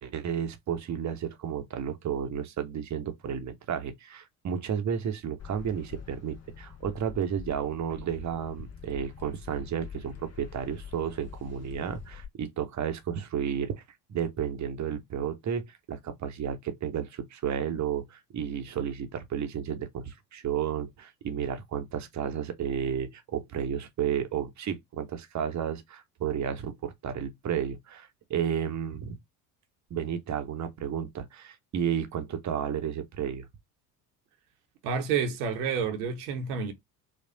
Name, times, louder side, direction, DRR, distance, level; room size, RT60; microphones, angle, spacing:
voice 1, 0.0-13.8 14.1-29.2 29.9-33.5, right 8 dB, 35° right, 1.0 m, -32 dB
sound 1, 5.4-12.3, left 7 dB, 30° left, 1.1 m, -45 dB
voice 2, 34.8-36.7, right 6 dB, 70° right, 1.1 m, -29 dB
4.3 x 2.3 x 2.8 m
hypercardioid pair, 60°, 48 cm